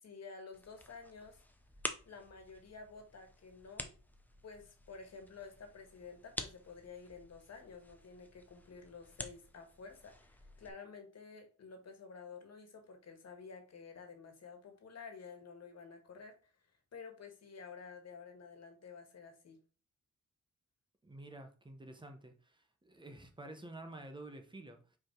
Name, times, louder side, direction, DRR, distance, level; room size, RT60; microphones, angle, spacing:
voice 1, 0.0-1.4 2.0-3.9 4.4-16.5 16.9-19.6, left 5 dB, 55° left, 1.7 m, -51 dB
sound 1, 0.5-10.7, left 1 dB, 5° left, 0.7 m, -49 dB
voice 2, 21.0-25.0, right 1 dB, 15° right, 1.0 m, -50 dB
5.5 x 4.9 x 4.6 m
wide cardioid pair, 170°, 31 cm